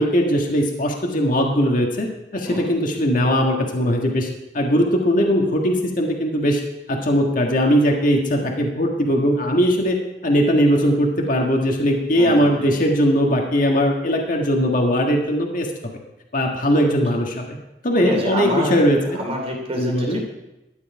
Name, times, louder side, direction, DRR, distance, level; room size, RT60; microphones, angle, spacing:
voice 1, 0.0-4.3 4.5-6.6 6.9-10.0 10.2-15.9 16.3-17.4 17.8-19.0 19.8-20.2, equal, 50° left, 1 dB, 1.6 m, -19 dB
voice 2, 12.1-12.7 16.8-17.0 17.9-20.2, equal, 35° right, 0 dB, 2.9 m, -27 dB
13.0 x 9.9 x 4.7 m, 0.95 s
head